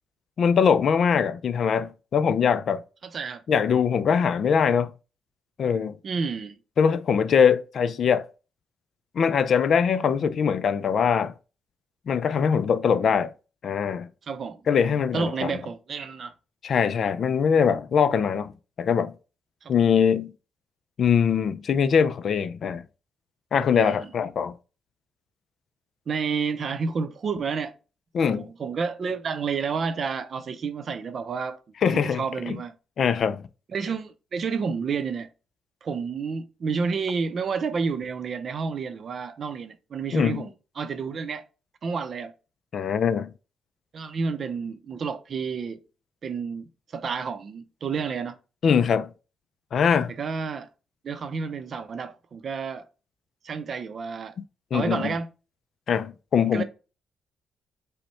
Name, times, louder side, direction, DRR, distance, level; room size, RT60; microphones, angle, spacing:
voice 1, 0.4-2.8 3.5-4.9 5.6-6.0 6.8-8.3 9.2-11.3 12.1-13.3 13.6-14.1 14.7-15.6 16.6-18.5 18.8-19.1 19.7-20.3 21.0-22.8 23.5-24.5 28.1-28.5 31.8-32.6 33.0-33.4 40.1-40.4 42.7-43.3 48.6-49.1 49.7-50.1 54.7-55.1 55.9-56.6, left 7 dB, 55° left, 0.3 m, -22 dB
voice 2, 3.1-3.4 6.0-6.6 14.3-14.6 15.1-16.3 19.6-19.7 23.8-24.1 26.1-27.7 28.3-32.7 33.7-35.3 35.8-41.5 41.8-42.3 43.9-45.8 46.2-48.4 50.1-50.7 51.0-52.9 53.4-54.3 54.7-55.3 56.5-56.6, right 5 dB, 50° right, 0.5 m, -30 dB
5.3 x 2.2 x 4.2 m
cardioid pair, 90°, 0 cm